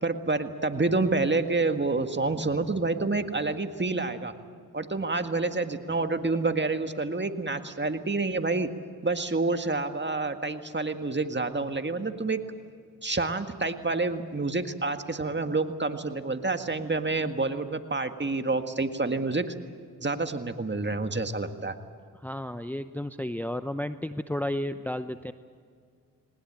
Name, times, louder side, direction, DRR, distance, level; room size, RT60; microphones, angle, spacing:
voice 1, 0.0-4.3 4.7-8.7 9.0-12.4 13.0-19.5 20.0-21.7, right 3 dB, 30° right, 7 dB, 1.8 m, -28 dB
voice 2, 22.2-25.3, left 1 dB, 5° left, 10 dB, 0.7 m, -32 dB
20.5 x 19.5 x 8.8 m, 2.1 s
cardioid pair, 50°, 37 cm